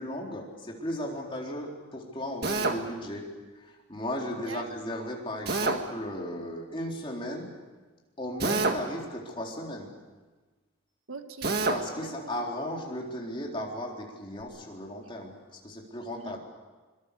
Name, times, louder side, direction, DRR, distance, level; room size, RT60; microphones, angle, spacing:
voice 1, 0.0-3.3 3.6-7.5 8.2-9.9 11.7-15.3 15.6-16.4, left 1 dB, 25° left, -1 dB, 4.0 m, -36 dB
Drill, 2.4-2.8 5.5-5.8 8.4-8.9 11.4-11.8, right 3 dB, 50° right, 1.8 m, -27 dB
voice 2, 4.3-4.9 11.1-11.7 12.0-12.4 16.1-16.4, right 3 dB, 85° right, 8 dB, 1.6 m, -43 dB
25.0 x 23.5 x 6.9 m, 1.3 s
head